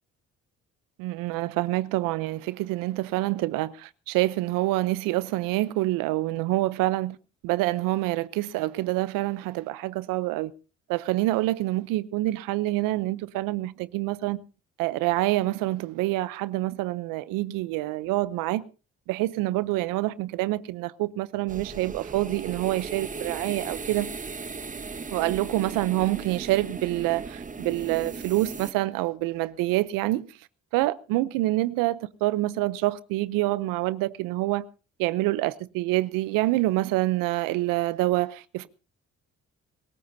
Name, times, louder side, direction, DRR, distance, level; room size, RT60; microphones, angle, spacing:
voice 1, 1.0-7.2 7.4-10.5 10.9-14.4 14.8-18.6 19.1-24.1 25.1-30.2 30.7-34.6 35.0-38.7, right 18 dB, 90° right, 0.7 m, -26 dB
sound 1, 21.5-28.7, right 4 dB, 25° right, 1.0 m, -37 dB
26.0 x 14.5 x 2.7 m
supercardioid pair, 60°, 32 cm